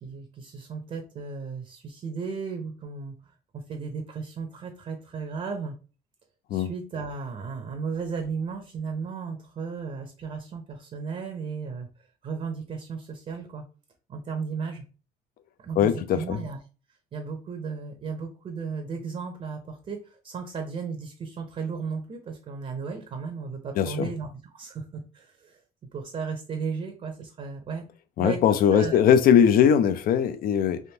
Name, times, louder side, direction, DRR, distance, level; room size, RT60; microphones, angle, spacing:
voice 1, 0.0-3.2 3.5-5.8 6.5-11.9 12.2-13.6 14.1-14.9 15.6-16.6 17.1-24.3 24.5-25.6 25.9-27.9 28.2-29.0, right 5 dB, 40° right, 0.7 m, -35 dB
voice 2, 15.8-16.4 23.8-24.1 28.2-30.8, left 8 dB, 60° left, 0.4 m, -20 dB
3.4 x 2.5 x 2.8 m
cardioid pair, 110°, 17 cm